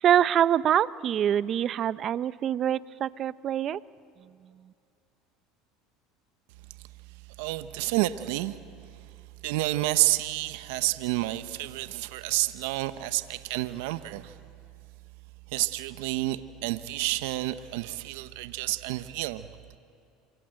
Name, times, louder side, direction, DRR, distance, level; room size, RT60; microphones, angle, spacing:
voice 1, 0.0-3.8, right 10 dB, 45° right, 17 dB, 0.6 m, -25 dB
voice 2, 7.4-8.6 9.4-14.3 15.5-19.5, right 17 dB, 80° right, 12 dB, 0.9 m, -29 dB
27.5 x 24.5 x 7.8 m, 2.5 s
supercardioid pair, 100°, 0 cm